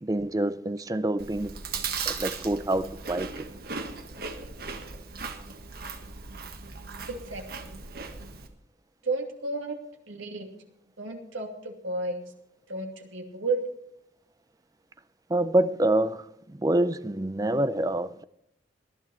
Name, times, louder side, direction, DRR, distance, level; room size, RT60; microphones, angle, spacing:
voice 1, 0.0-1.6 2.1-3.5 15.3-18.2, right 1 dB, 20° right, 0.5 m, -26 dB
Chewing mastication, 1.2-8.5, right 5 dB, 50° right, 1.5 m, -37 dB
voice 2, 7.1-7.8 9.0-9.8 10.1-10.5 11.0-12.3 12.7-13.6, right 3 dB, 80° right, 2.8 m, -32 dB
19.0 x 11.0 x 4.3 m
head